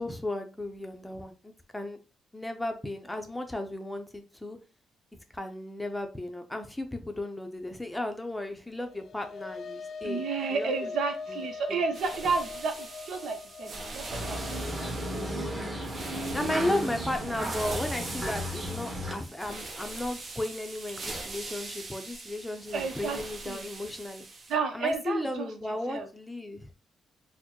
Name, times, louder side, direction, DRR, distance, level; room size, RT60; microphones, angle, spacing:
voice 1, 0.0-2.0 2.3-4.6 5.3-10.9 11.3-11.4 11.7-11.8 16.3-24.2 24.7-26.8, left 1 dB, 10° left, 6 dB, 0.6 m, -35 dB
sound 1, 8.7-17.2, left 4 dB, 55° left, 0.4 m, -42 dB
voice 2, 10.0-15.1 17.4-17.5 22.7-23.2 23.5-23.7 24.5-25.5 25.9-26.1, right 4 dB, 70° right, 6 dB, 0.7 m, -32 dB
sound 2, 11.9-24.5, right 2 dB, 45° right, 0.9 m, -41 dB
sound 3, 14.1-19.1, equal, 25° right, 1.4 m, -34 dB
4.1 x 2.1 x 3.0 m, 0.34 s
cardioid pair, 90°, 0 cm